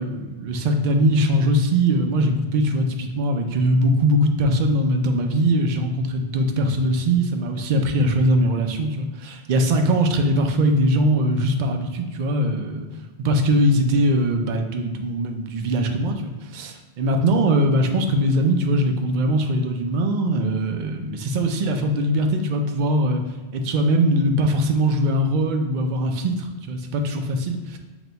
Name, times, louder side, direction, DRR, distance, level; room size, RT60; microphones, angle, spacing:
voice 1, 0.0-12.9 13.2-23.2 23.5-27.8, right 1 dB, 55° right, 4 dB, 0.5 m, -21 dB
6.1 x 2.2 x 3.9 m, 1.3 s
omnidirectional pair, 1.2 m